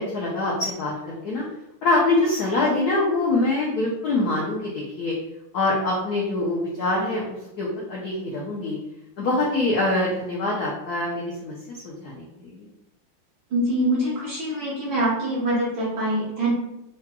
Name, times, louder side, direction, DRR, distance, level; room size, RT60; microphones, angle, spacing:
voice 1, 0.0-1.4 1.8-5.1 5.5-8.8 9.2-12.7, left 2 dB, 75° left, -4 dB, 0.9 m, -24 dB
voice 2, 13.5-16.5, right 1 dB, 50° right, -6 dB, 1.4 m, -24 dB
4.8 x 2.8 x 2.2 m, 0.87 s
omnidirectional pair, 2.4 m